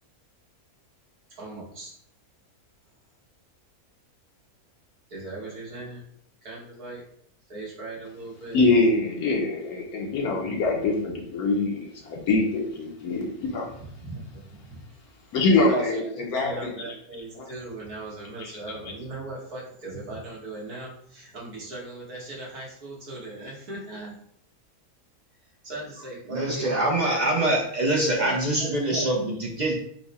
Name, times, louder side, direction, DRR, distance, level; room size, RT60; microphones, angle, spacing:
voice 1, 1.4-1.9 5.1-6.0 6.4-7.0 7.5-8.6 14.0-14.8 15.6-15.9 16.4-24.2 25.6-26.7 28.2-29.1, right 2 dB, 80° right, -5 dB, 1.9 m, -38 dB
voice 2, 8.5-13.7 15.3-16.9 17.3-17.5 18.4-18.6, left 3 dB, 75° left, 0 dB, 1.2 m, -24 dB
voice 3, 26.3-29.7, right 1 dB, 60° right, -1 dB, 0.4 m, -24 dB
4.6 x 2.2 x 4.0 m, 0.68 s
omnidirectional pair, 1.6 m